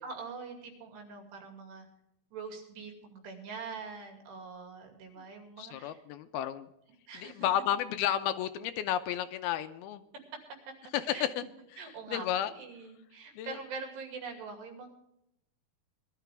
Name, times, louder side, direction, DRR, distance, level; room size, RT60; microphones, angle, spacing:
voice 1, 0.0-1.9 2.3-6.0 7.1-7.5 10.3-10.4 11.1-11.2 11.8-14.9, right 4 dB, 85° right, 3 dB, 4.6 m, -44 dB
voice 2, 5.6-6.7 7.1-10.0 10.9-11.4 12.1-12.5 13.4-13.6, left 11 dB, 80° left, 10 dB, 2.5 m, -32 dB
20.5 x 12.0 x 3.4 m, 0.82 s
omnidirectional pair, 4.7 m